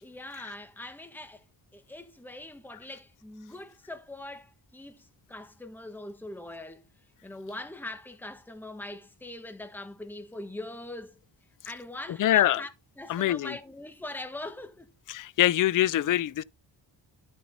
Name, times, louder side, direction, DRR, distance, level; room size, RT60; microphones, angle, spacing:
voice 1, 0.0-1.4 1.7-6.8 7.2-11.2 11.6-14.9, left 2 dB, 5° left, 1.3 m, -42 dB
voice 2, 12.2-12.6 13.1-13.6 15.1-16.4, left 13 dB, 50° left, 0.4 m, -24 dB
12.5 x 4.3 x 4.1 m
cardioid pair, 95°, 44 cm